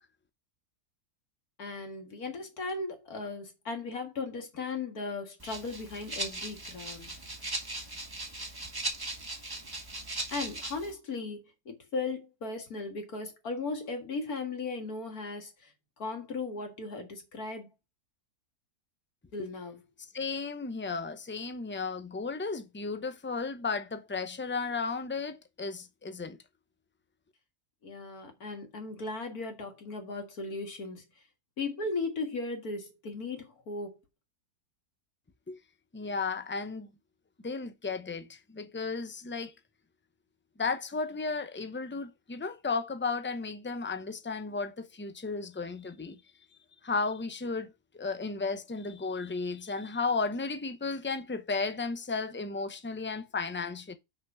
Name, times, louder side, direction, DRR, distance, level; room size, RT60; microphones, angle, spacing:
voice 1, 1.6-7.2 10.3-11.4 11.7-15.7 16.0-17.7 19.3-19.8 27.8-31.0 31.6-34.0, left 3 dB, 70° left, 2.4 m, -37 dB
Rattle (instrument), 5.4-10.9, right 2 dB, 15° right, 1.5 m, -38 dB
voice 2, 20.1-26.4 35.5-35.6 35.9-36.9 37.4-39.5 40.6-46.2 46.8-54.0, left 4 dB, 15° left, 0.4 m, -34 dB
5.9 x 5.6 x 6.0 m
omnidirectional pair, 1.6 m